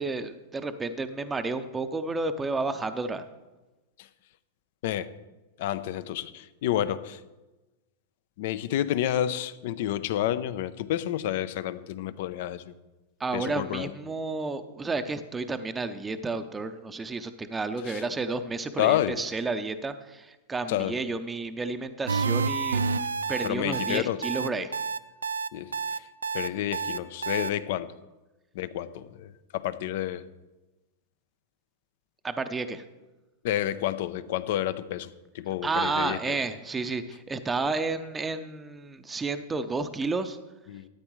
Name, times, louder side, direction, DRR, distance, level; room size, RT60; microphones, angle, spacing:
voice 1, 0.0-3.2 13.2-22.8 23.3-24.7 32.2-32.8 35.6-40.4, right 3 dB, 15° right, 9 dB, 0.6 m, -31 dB
voice 2, 5.6-7.2 8.4-12.7 13.3-13.9 17.9-18.0 18.8-19.2 20.7-21.0 23.4-24.2 25.5-25.7 26.3-28.0 28.5-30.2 33.4-35.1 35.3-36.3 40.7-40.9, left 12 dB, 60° left, 14 dB, 0.6 m, -29 dB
sound 1, 22.1-27.5, right 5 dB, 85° right, 0.4 m, -29 dB
13.0 x 8.7 x 3.1 m, 1.1 s
hypercardioid pair, 100°, 0 cm